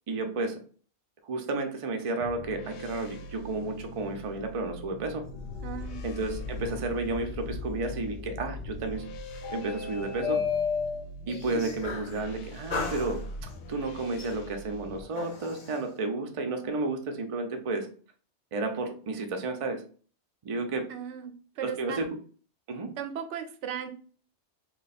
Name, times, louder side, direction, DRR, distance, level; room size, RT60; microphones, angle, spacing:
voice 1, 0.1-0.6 1.3-5.3 6.0-9.1 9.5-10.4 11.3-17.9 18.5-19.8 20.4-20.9 21.6-22.2 22.7-22.9, right 3 dB, 40° right, 4 dB, 0.5 m, -32 dB
sound 1, 2.2-15.0, left 2 dB, 75° left, 0.8 m, -42 dB
sound 2, 5.2-12.2 12.7-13.6 14.2-15.8, left 5 dB, 45° left, 0.6 m, -36 dB
voice 2, 5.6-6.0 20.9-22.1 23.0-23.9, right 8 dB, 85° right, 7 dB, 0.9 m, -37 dB
3.0 x 2.3 x 4.0 m, 0.41 s
omnidirectional pair, 1.2 m